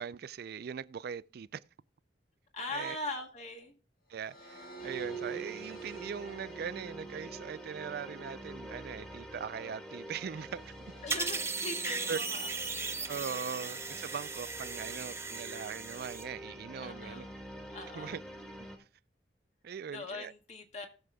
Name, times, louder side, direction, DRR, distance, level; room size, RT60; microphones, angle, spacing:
voice 1, 0.0-1.6 2.7-3.0 4.1-10.7 12.1-12.2 13.1-17.3 17.9-18.2 19.6-20.3, right 6 dB, 60° right, 0.4 m, -40 dB
voice 2, 2.5-3.8 11.0-13.4 14.8-15.1 16.8-17.4 17.7-18.2 19.9-20.9, left 2 dB, 40° left, 1.8 m, -42 dB
sound 1, 4.2-15.5, right 5 dB, 55° left, 1.6 m, -49 dB
sound 2, 4.8-18.8, equal, 5° left, 1.6 m, -48 dB
sound 3, 11.1-16.2, right 4 dB, 15° right, 0.6 m, -37 dB
19.5 x 6.8 x 2.2 m
head